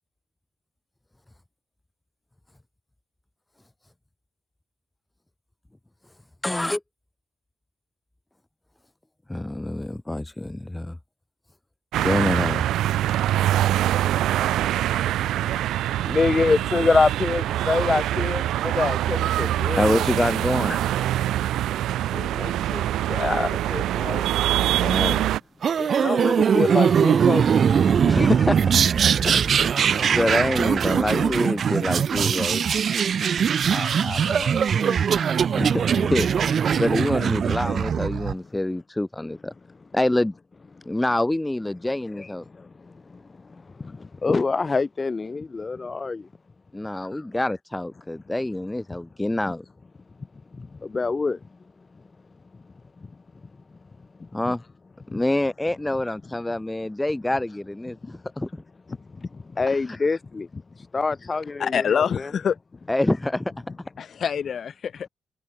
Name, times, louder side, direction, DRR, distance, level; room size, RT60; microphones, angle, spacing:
voice 1, 6.4-6.8 9.3-11.0 12.0-12.6 19.7-20.8 24.8-25.3 28.1-28.6 29.2-32.6 35.6-36.3 36.8-39.5 39.9-40.3 40.9-42.4 46.7-49.6 54.3-54.6 55.1-58.5 59.7-60.0 62.9-63.5, left 1 dB, 10° left, 0.5 m, -26 dB
sound 1, 11.9-25.4, right 13 dB, 80° right, 0.5 m, -24 dB
voice 2, 16.0-20.1 22.1-24.2 25.8-27.4 33.7-35.1 42.2-43.2 43.5-46.3 47.0-47.2 50.5-51.4 54.2-54.5 55.1-55.2 58.0-58.1 59.1-60.6 60.9-62.3, left 4 dB, 30° left, 2.7 m, -27 dB
sound 2, 25.6-38.3, right 7 dB, 55° right, 0.8 m, -21 dB
voice 3, 61.6-62.6 64.0-65.1, left 7 dB, 55° left, 1.4 m, -25 dB
cardioid pair, 90°, 0 cm